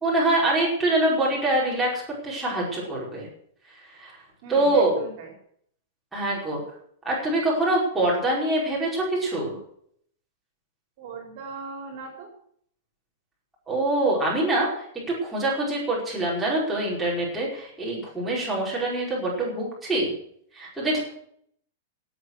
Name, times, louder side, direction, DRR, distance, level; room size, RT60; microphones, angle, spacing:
voice 1, 0.0-3.3 4.0-4.2 4.5-5.0 6.1-6.6 7.1-9.6 13.7-14.9 15.2-20.1 20.5-21.0, right 1 dB, 5° right, -6 dB, 5.1 m, -24 dB
voice 2, 4.4-5.3 11.0-12.3 20.9-21.0, right 4 dB, 35° right, 3 dB, 4.2 m, -39 dB
17.5 x 8.7 x 6.4 m, 0.65 s
supercardioid pair, 180°, 0 cm